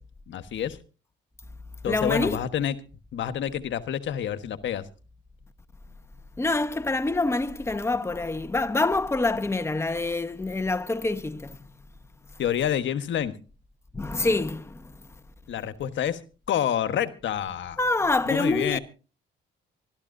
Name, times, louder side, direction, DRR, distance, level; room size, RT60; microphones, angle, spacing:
voice 1, 0.3-0.8 1.8-2.7 3.1-4.9 12.4-13.3 15.5-16.2 16.5-17.8 18.3-18.8, left 9 dB, 70° left, 1.4 m, -28 dB
voice 2, 1.9-2.4 6.4-11.6 13.9-15.0 17.8-18.8, left 2 dB, 15° left, 1.1 m, -26 dB
24.5 x 13.0 x 2.7 m
cardioid pair, 90°, 20 cm